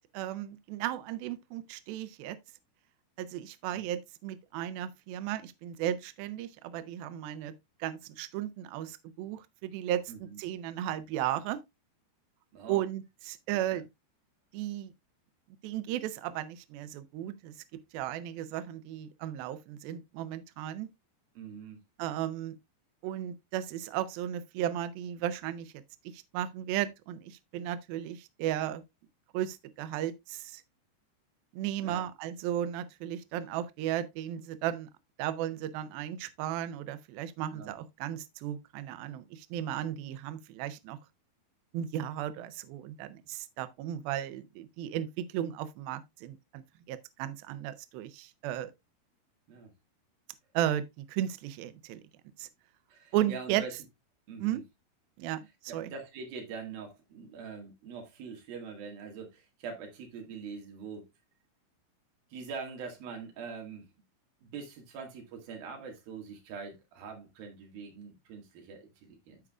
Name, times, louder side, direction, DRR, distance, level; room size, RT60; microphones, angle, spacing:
voice 1, 0.1-2.4 3.2-7.5 7.8-11.6 12.7-13.9 14.5-14.9 15.6-17.5 17.9-20.9 22.0-22.6 23.0-25.7 26.1-28.8 29.3-30.6 31.5-34.9 35.2-41.0 41.7-48.7 50.5-52.0 52.4-52.5 53.1-53.6 54.4-54.6 55.2-55.4 55.7-55.9, right 12 dB, 90° right, 2.1 m, -35 dB
voice 2, 10.1-10.4 12.5-12.8 13.5-13.8 21.4-21.8 31.8-32.1 37.5-37.8 49.5-49.7 52.9-53.8 54.3-54.6 55.7-61.1 62.3-63.9 64.4-69.4, right 5 dB, 60° right, 3.4 m, -43 dB
14.5 x 4.9 x 2.3 m
omnidirectional pair, 5.1 m